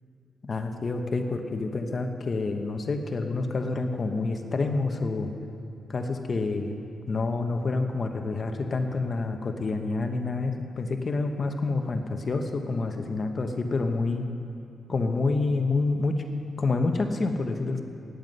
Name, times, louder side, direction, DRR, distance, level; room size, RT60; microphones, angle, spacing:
voice 1, 0.4-5.3 5.9-6.8 7.1-14.3 14.9-16.2 16.6-17.8, left 3 dB, 40° left, 5 dB, 1.0 m, -28 dB
17.0 x 9.8 x 5.5 m, 2.4 s
wide cardioid pair, 125°, 0 cm